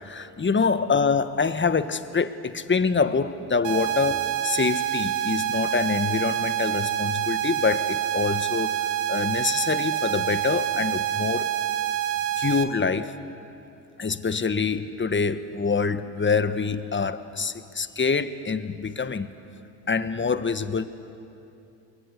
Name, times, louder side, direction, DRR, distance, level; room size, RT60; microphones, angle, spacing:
voice 1, 0.0-8.8 9.1-11.5 12.4-13.1 14.0-19.3 19.9-20.8, left 5 dB, 25° left, 11 dB, 1.4 m, -25 dB
sound 1, 3.6-12.6, right 11 dB, 85° right, 1.4 m, -27 dB
28.0 x 22.0 x 8.2 m, 2.8 s
hypercardioid pair, 65°, 47 cm